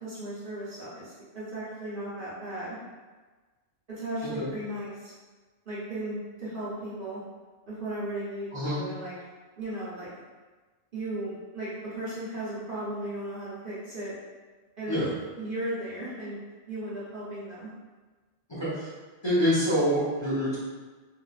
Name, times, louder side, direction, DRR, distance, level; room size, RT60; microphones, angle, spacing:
voice 1, 0.0-2.8 3.9-5.1 5.7-7.2 7.7-9.1 9.6-10.1 10.9-14.1 14.8-15.1 15.4-16.4 16.7-17.7, right 1 dB, 50° right, -10 dB, 0.9 m, -36 dB
voice 2, 8.5-8.8 14.9-15.1 18.5-18.9 19.2-20.6, equal, 25° left, -12 dB, 0.9 m, -26 dB
3.4 x 2.5 x 2.3 m, 1.3 s
omnidirectional pair, 1.3 m